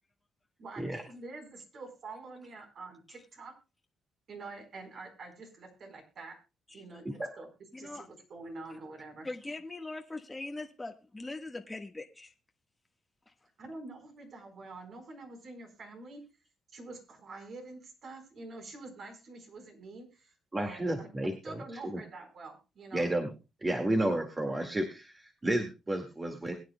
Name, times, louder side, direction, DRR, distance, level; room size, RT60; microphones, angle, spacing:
voice 1, 0.6-3.5 4.3-6.4 6.7-7.5 7.8-9.3 13.6-16.2 16.7-21.1 21.4-23.1, right 3 dB, 55° right, 4 dB, 4.3 m, -46 dB
voice 2, 6.7-7.0 7.7-8.1 9.2-12.3, left 2 dB, 15° left, 4 dB, 1.4 m, -41 dB
voice 3, 20.5-22.0 22.9-23.3 23.6-26.5, right 1 dB, 20° right, 4 dB, 2.0 m, -32 dB
21.5 x 9.4 x 2.2 m, 0.28 s
cardioid pair, 90°, 0 cm